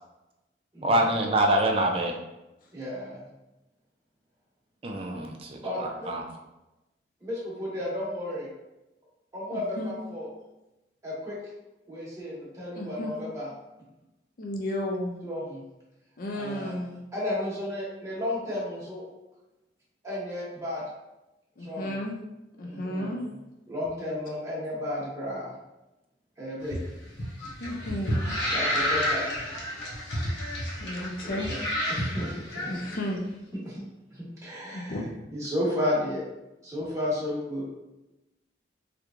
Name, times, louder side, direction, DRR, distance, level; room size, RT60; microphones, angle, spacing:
voice 1, 0.8-2.1 4.8-6.2, right 1 dB, 30° right, 2 dB, 0.4 m, -25 dB
voice 2, 2.7-3.2 5.6-6.1 7.2-8.5 9.3-10.3 11.0-11.4 11.9-13.5 15.2-15.6 16.3-16.8 17.1-19.0 20.0-20.8 21.6-21.9 22.6-23.1 23.7-25.5 26.4-26.8 28.5-29.2 31.2-31.6 31.9-32.7 33.6-33.8 34.1-35.0 35.3-36.2 36.6-37.6, left 1 dB, 15° right, -7 dB, 1.1 m, -33 dB
voice 3, 9.5-9.9 12.7-13.1 14.4-15.2 16.2-17.0 21.6-22.2 22.6-23.2 27.6-28.4 30.8-31.5 32.7-33.3 34.7-35.1, left 1 dB, 50° left, 0 dB, 0.4 m, -33 dB
sound 1, 26.6-32.9, equal, 75° left, 0.9 m, -30 dB
3.4 x 3.0 x 2.5 m, 0.96 s
head